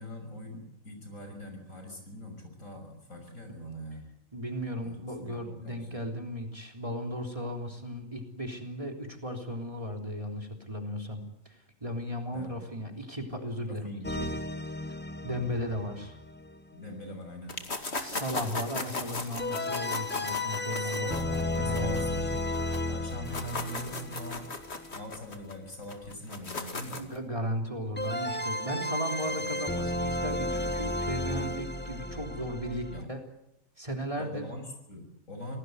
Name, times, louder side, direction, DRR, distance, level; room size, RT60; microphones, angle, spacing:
voice 1, 0.0-4.1 4.8-6.0 12.3-12.8 13.6-14.1 16.7-17.6 20.8-24.5 24.9-27.0 29.2-29.6 32.9-33.1 34.2-35.6, equal, 85° left, 5 dB, 6.5 m, -42 dB
voice 2, 4.3-13.9 14.2-14.3 15.2-16.2 17.9-22.1 27.0-33.2 33.8-34.5, equal, 25° right, 3 dB, 3.6 m, -36 dB
sound 1, 14.0-16.8 19.4-25.1 28.0-33.0, left 1 dB, 10° left, 0.9 m, -33 dB
sound 2, 17.5-22.8 23.1-27.2, left 3 dB, 55° left, 2.5 m, -37 dB
26.0 x 18.5 x 8.1 m, 0.86 s
omnidirectional pair, 1.4 m